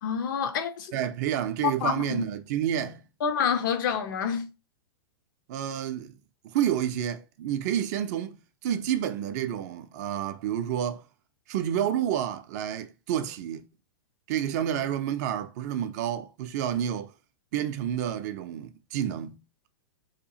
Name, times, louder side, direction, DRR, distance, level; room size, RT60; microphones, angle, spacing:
voice 1, 0.0-0.9 1.6-2.3 3.2-4.5, left 7 dB, 55° left, 0.5 m, -27 dB
voice 2, 0.9-3.0 5.5-6.2 6.4-11.0 11.5-13.7 14.3-17.1 17.5-19.4, right 10 dB, 45° right, 0.4 m, -29 dB
2.8 x 2.3 x 2.8 m
figure-of-eight pair, 105°, 13 cm